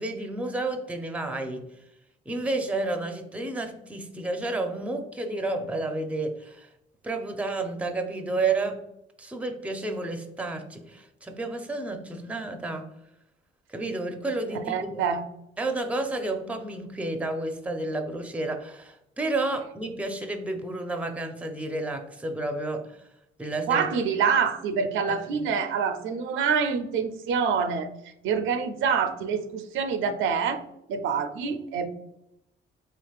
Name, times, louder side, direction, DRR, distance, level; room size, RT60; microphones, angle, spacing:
voice 1, 0.0-1.7 2.3-6.7 7.0-8.9 9.2-12.9 13.7-14.9 15.6-23.0 23.4-23.9 25.1-25.5, right 2 dB, 5° right, 6 dB, 0.5 m, -31 dB
voice 2, 14.6-15.2 23.7-30.6 30.9-31.9, right 6 dB, 80° right, 8 dB, 0.4 m, -26 dB
3.6 x 3.3 x 2.3 m, 0.81 s
cardioid pair, 90°, 20 cm